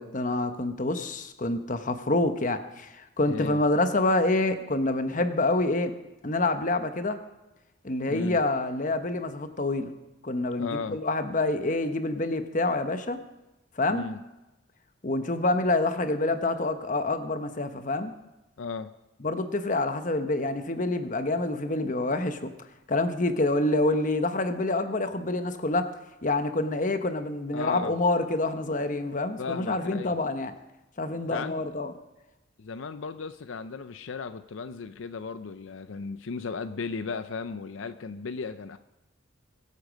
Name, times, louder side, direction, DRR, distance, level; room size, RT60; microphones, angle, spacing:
voice 1, 0.0-5.9 6.2-7.2 7.8-9.9 10.2-13.2 13.8-14.1 15.0-18.1 19.2-22.5 22.9-25.9 26.2-30.5 31.0-31.9, left 2 dB, 40° left, 9 dB, 1.0 m, -27 dB
voice 2, 3.3-3.6 8.1-8.4 10.6-11.0 13.9-14.2 18.6-18.9 27.5-27.9 29.4-30.1 31.3-31.6 32.6-38.8, left 4 dB, 75° left, 11 dB, 0.5 m, -35 dB
23.0 x 8.4 x 5.2 m, 0.99 s
head